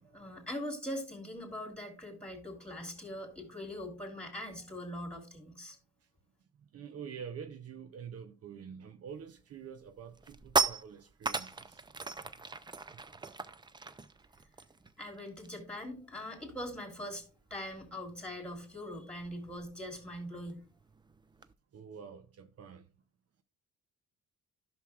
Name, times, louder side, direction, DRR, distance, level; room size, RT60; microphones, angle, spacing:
voice 1, 0.1-5.8 15.0-17.2 17.5-20.6, left 1 dB, 5° left, 2.9 m, -42 dB
voice 2, 6.7-11.8 21.7-22.8, right 7 dB, 55° right, 0.7 m, -46 dB
sound 1, 9.2-9.4 9.8-15.7 16.0-16.2 16.5-21.5, right 4 dB, 15° right, 0.4 m, -38 dB
11.5 x 6.2 x 2.4 m
cardioid pair, 90°, 30 cm